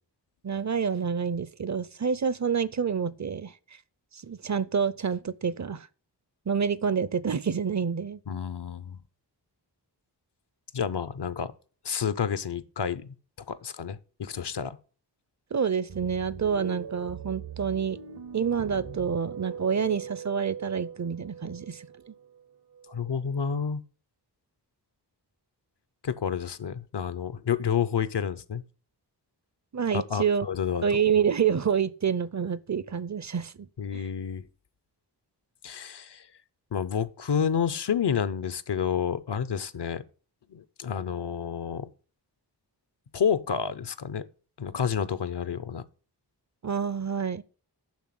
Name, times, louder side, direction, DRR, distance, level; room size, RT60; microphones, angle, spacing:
voice 1, 0.4-3.5 4.1-5.9 6.5-8.2 15.5-18.0 18.3-21.9 29.7-30.5 30.8-33.7 33.9-34.0 46.6-47.4, right 7 dB, 45° right, 0.5 m, -28 dB
voice 2, 8.3-9.0 10.7-11.5 11.8-13.1 13.5-14.8 22.9-23.8 26.0-28.6 29.9-31.0 33.8-34.5 35.6-36.3 36.7-40.0 40.5-41.9 43.1-44.3 44.6-45.8, left 7 dB, 75° left, 0.7 m, -29 dB
sound 1, 15.9-23.4, right 7 dB, 70° right, 0.8 m, -42 dB
7.3 x 5.9 x 7.5 m
wide cardioid pair, 65°, 42 cm